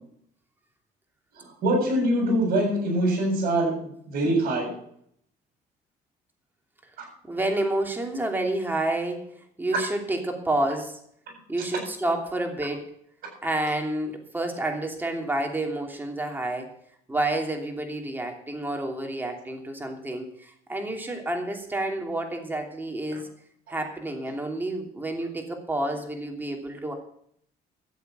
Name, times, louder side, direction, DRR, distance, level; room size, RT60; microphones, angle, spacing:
voice 1, 1.3-4.7 7.0-7.1, right 1 dB, 60° right, 0 dB, 7.7 m, -24 dB
voice 2, 7.2-9.2 9.6-11.0 11.5-12.8 13.4-16.7 17.1-23.3 23.7-26.9, right 1 dB, 10° right, 2 dB, 2.9 m, -29 dB
13.5 x 8.1 x 8.1 m, 0.68 s
cardioid pair, 110°, 17 cm